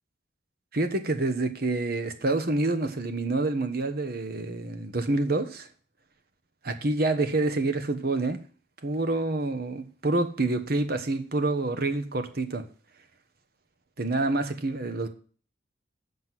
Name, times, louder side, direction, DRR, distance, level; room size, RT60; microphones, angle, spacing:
voice 1, 0.7-5.7 6.6-8.4 8.8-12.6 14.0-15.1, right 2 dB, 55° right, 1.2 m, -27 dB
7.8 x 7.6 x 6.1 m
head